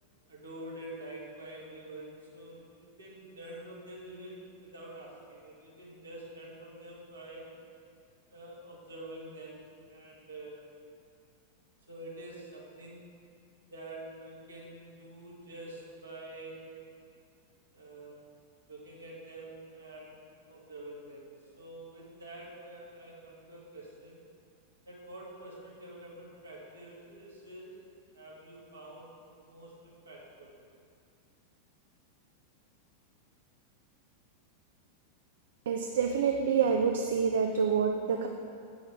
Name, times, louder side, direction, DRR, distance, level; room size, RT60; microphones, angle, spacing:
voice 1, 0.0-7.5 8.3-10.6 11.9-13.1 13.7-16.7 17.7-18.3 18.7-21.3 21.6-24.2 24.9-27.8 28.1-29.2 29.4-30.5, right 1 dB, 75° right, -5 dB, 2.2 m, -47 dB
voice 2, 35.7-38.3, right 6 dB, 60° right, 4 dB, 0.5 m, -27 dB
8.7 x 6.4 x 4.8 m, 2.3 s
figure-of-eight pair, 90°, 0 cm